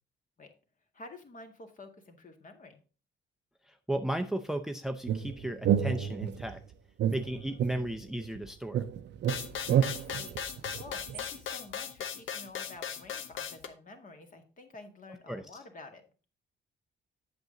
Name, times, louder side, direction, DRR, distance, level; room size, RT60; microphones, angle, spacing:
voice 1, 0.9-2.8 7.1-8.1 9.3-16.0, left 3 dB, 40° left, 4 dB, 2.0 m, -50 dB
voice 2, 3.7-6.6 7.1-8.9 15.3-15.4, right 1 dB, ahead, 7 dB, 0.6 m, -35 dB
sound 1, 5.1-6.5 7.0-8.4 8.7-11.3, right 9 dB, 60° right, 0.6 m, -30 dB
sound 2, 9.3-13.7, left 8 dB, 75° left, 1.0 m, -38 dB
8.0 x 7.0 x 3.8 m, 0.35 s
cardioid pair, 90°, 20 cm